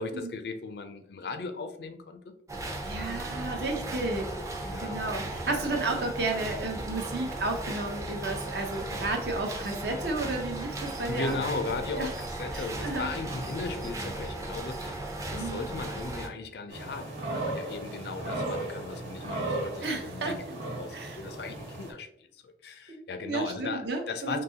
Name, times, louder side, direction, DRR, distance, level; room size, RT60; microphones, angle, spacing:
voice 1, 0.0-2.3 3.0-3.9 4.6-5.0 11.1-22.1 22.3-24.4, left 3 dB, 65° left, 0.4 m, -37 dB
sound 1, 2.5-16.3, right 2 dB, 15° right, 0.5 m, -36 dB
voice 2, 2.8-4.3 4.8-11.4 11.9-12.1 12.5-13.1 15.3-15.6 19.8-20.3 20.9-21.2 22.9-24.4, right 2 dB, 65° right, 0.7 m, -32 dB
sound 2, 16.7-21.9, right 2 dB, 85° right, 1.3 m, -36 dB
3.8 x 2.8 x 2.8 m
head